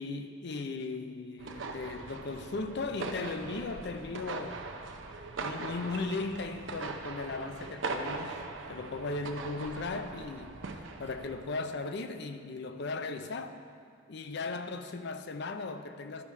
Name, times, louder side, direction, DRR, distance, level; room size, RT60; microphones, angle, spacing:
voice 1, 0.0-4.6 5.4-8.4 8.7-13.6 14.1-16.2, left 3 dB, 60° left, 0.5 m, -37 dB
sound 1, 1.4-11.4, right 3 dB, 70° right, 0.6 m, -41 dB
12.0 x 4.7 x 5.4 m
head